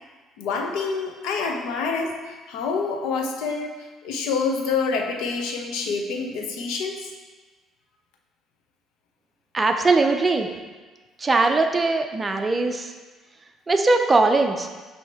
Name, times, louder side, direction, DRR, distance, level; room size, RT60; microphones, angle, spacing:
voice 1, 0.4-7.1, left 4 dB, 85° left, 2 dB, 0.7 m, -27 dB
voice 2, 9.5-10.5 11.2-12.9 13.7-14.7, right 3 dB, 20° right, 5 dB, 0.5 m, -20 dB
6.1 x 2.9 x 5.6 m, 1.3 s
cardioid pair, 110°, 0 cm